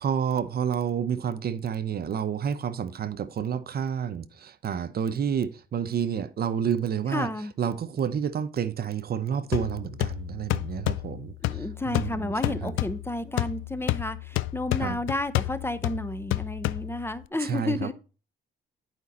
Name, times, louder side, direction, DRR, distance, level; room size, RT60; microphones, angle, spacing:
voice 1, 0.0-7.3 7.6-12.7 14.8-15.0 17.4-17.9, right 8 dB, 50° right, 0.8 m, -29 dB
voice 2, 7.1-7.5 11.5-17.9, left 2 dB, 10° left, 0.8 m, -31 dB
sound 1, 9.5-17.3, left 17 dB, 85° left, 0.5 m, -31 dB
11.0 x 5.2 x 4.2 m
cardioid pair, 90°, 20 cm